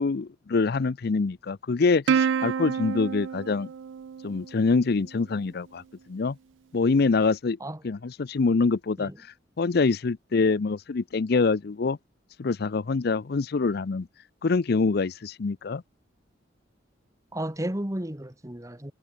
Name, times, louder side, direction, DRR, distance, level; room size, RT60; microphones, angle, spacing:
voice 1, 0.0-3.7 4.2-5.8 6.1-6.4 6.7-7.6 7.8-9.1 9.6-12.0 12.4-14.1 14.4-15.8, left 4 dB, 55° left, 0.5 m, -25 dB
Plucked string instrument, 2.1-4.8, right 7 dB, 80° right, 0.4 m, -28 dB
voice 2, 17.3-18.9, right 1 dB, 15° right, 1.6 m, -33 dB
head